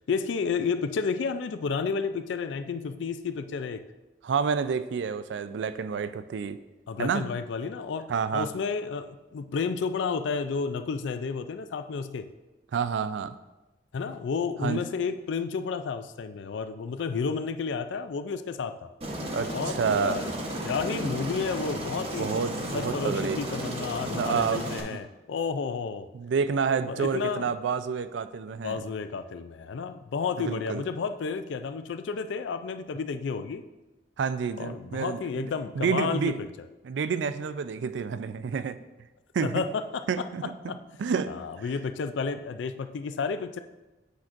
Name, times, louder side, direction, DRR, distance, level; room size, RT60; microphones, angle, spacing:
voice 1, 0.1-3.8 6.9-12.3 13.9-18.9 19.5-20.3 20.6-22.4 22.7-26.1 26.9-27.5 28.6-33.6 34.6-36.3 39.4-40.2 40.7-40.8 41.3-43.6, left 5 dB, 75° left, 9 dB, 0.4 m, -31 dB
voice 2, 4.2-6.6 7.0-7.3 8.1-8.5 12.7-13.3 14.6-14.8 19.3-20.2 22.2-23.4 24.1-24.6 24.9-25.0 26.1-28.8 30.4-30.8 34.2-36.4 36.8-38.8 39.3-39.6 40.1-40.5 41.0-41.7, right 6 dB, 75° right, 12 dB, 0.3 m, -29 dB
Aircraft, 19.0-24.8, right 1 dB, 30° right, 0.9 m, -33 dB
8.3 x 5.9 x 2.5 m, 1.1 s
head